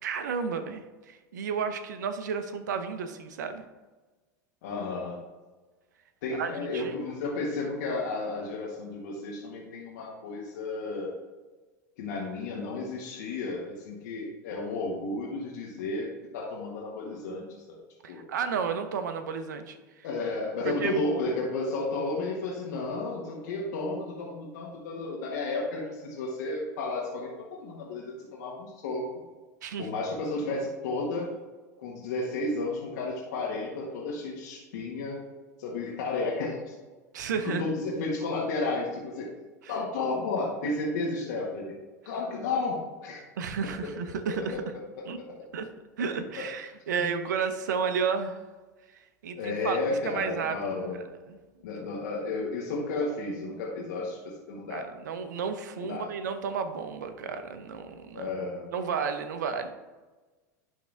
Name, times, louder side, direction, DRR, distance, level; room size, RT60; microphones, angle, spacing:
voice 1, 0.0-3.6 6.3-6.9 18.0-19.8 20.6-21.0 29.6-29.9 37.1-37.7 39.6-39.7 43.4-44.6 45.1-45.2 45.5-45.7 46.0-48.4 49.2-49.8 50.0-50.5 51.3-51.4 54.7-58.3 58.7-59.7, right 6 dB, 80° right, 8 dB, 0.8 m, -32 dB
voice 2, 4.6-5.2 6.2-11.1 12.0-17.8 18.1-18.3 20.0-29.2 29.8-31.3 31.8-35.2 35.6-36.7 37.4-39.3 39.7-41.7 42.0-43.2 44.3-44.6 45.0-45.3 46.4-46.5 47.0-47.1 49.4-51.0 51.6-54.2 54.5-54.9 55.8-56.1 58.1-58.7, left 3 dB, 70° left, -3 dB, 1.6 m, -32 dB
11.0 x 3.7 x 3.4 m, 1.2 s
hypercardioid pair, 95°, 10 cm